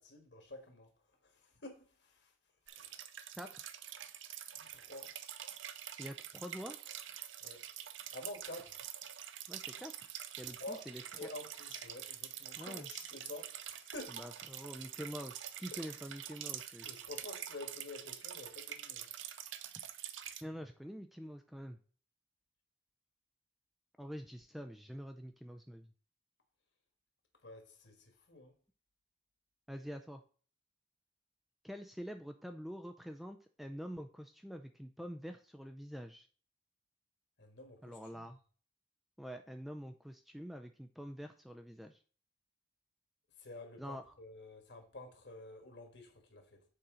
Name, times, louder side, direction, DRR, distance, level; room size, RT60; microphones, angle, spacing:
voice 1, 0.0-2.3 2.7-3.0 4.5-5.2 7.4-7.6 8.1-8.8 10.4-10.9 11.2-14.2 15.7-15.8 16.8-19.1 27.4-28.6 37.4-38.3 43.4-46.6, left 2 dB, 60° left, 1.6 m, -50 dB
sound 1, 2.7-20.4, right 11 dB, 70° right, 0.5 m, -46 dB
voice 2, 3.4-3.7 6.0-6.8 9.5-10.1 10.4-11.3 12.6-12.9 14.1-16.9 20.4-21.8 24.0-25.9 29.7-30.2 31.6-36.3 37.8-38.4 39.2-42.0 43.8-44.0, equal, ahead, 0.3 m, -46 dB
6.7 x 4.3 x 3.8 m
head